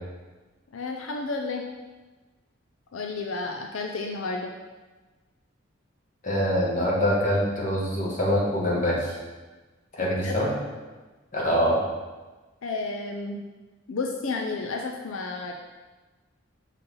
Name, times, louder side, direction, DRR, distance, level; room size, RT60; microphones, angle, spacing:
voice 1, 0.7-1.6 2.9-4.5 10.0-10.4 12.6-13.4 13.9-15.5, left 3 dB, 85° left, 2 dB, 0.5 m, -31 dB
voice 2, 6.2-9.1 10.0-10.5 11.3-11.8, equal, 40° left, -4 dB, 1.6 m, -24 dB
5.6 x 4.1 x 5.4 m, 1.3 s
head